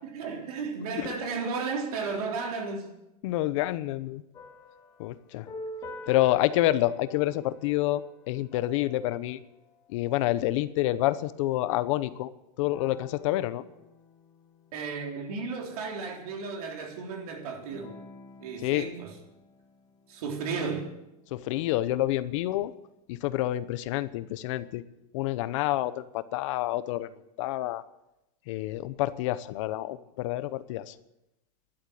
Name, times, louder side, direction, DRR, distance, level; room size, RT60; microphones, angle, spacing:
voice 1, 0.0-2.9 14.7-18.0 18.4-19.1 20.1-20.9, right 4 dB, 70° right, 3.6 m, -34 dB
voice 2, 3.2-4.2 5.0-5.5 6.1-9.4 9.9-12.3 12.6-13.6 18.6-18.9 21.3-22.7 23.1-24.8 25.1-27.1 27.4-27.8 28.5-30.9, left 15 dB, 50° left, 0.9 m, -28 dB
sound 1, 4.3-10.3 12.6-16.5 17.7-20.4, left 3 dB, 20° left, 1.7 m, -47 dB
11.5 x 11.5 x 7.7 m
supercardioid pair, 165°, 20 cm